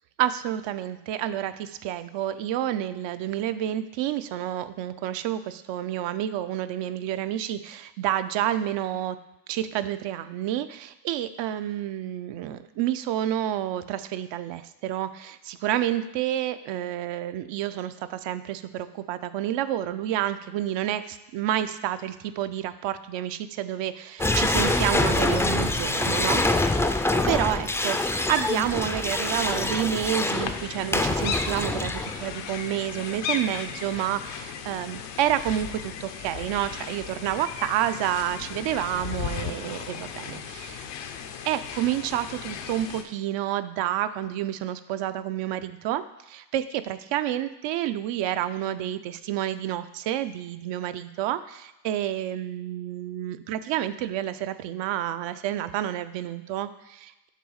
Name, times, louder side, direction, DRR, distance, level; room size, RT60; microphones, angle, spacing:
voice 1, 0.2-9.2 9.5-26.4 27.3-40.9 41.4-57.3, right 12 dB, 75° right, 11 dB, 0.6 m, -29 dB
sound 1, 24.2-32.3, left 2 dB, 5° left, 0.3 m, -25 dB
sound 2, 30.3-43.0, left 7 dB, 85° left, 0.9 m, -36 dB
6.6 x 4.0 x 6.3 m, 0.94 s
cardioid pair, 105°, 44 cm